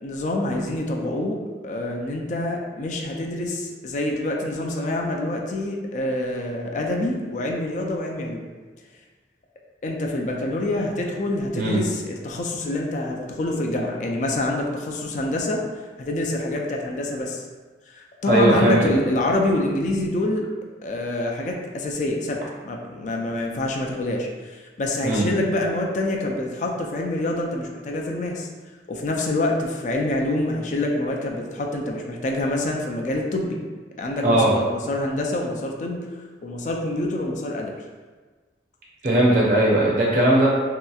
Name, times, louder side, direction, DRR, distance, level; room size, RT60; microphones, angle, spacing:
voice 1, 0.0-1.4 1.6-8.5 9.8-15.6 16.0-17.4 17.9-20.5 20.8-28.5 28.9-33.6 34.0-36.0 36.4-37.7, left 1 dB, 45° left, 1 dB, 0.3 m, -26 dB
voice 2, 18.3-18.9 25.0-25.3 34.2-34.5 39.0-40.5, right 1 dB, 50° right, -4 dB, 0.6 m, -18 dB
3.2 x 2.8 x 2.3 m, 1.4 s
head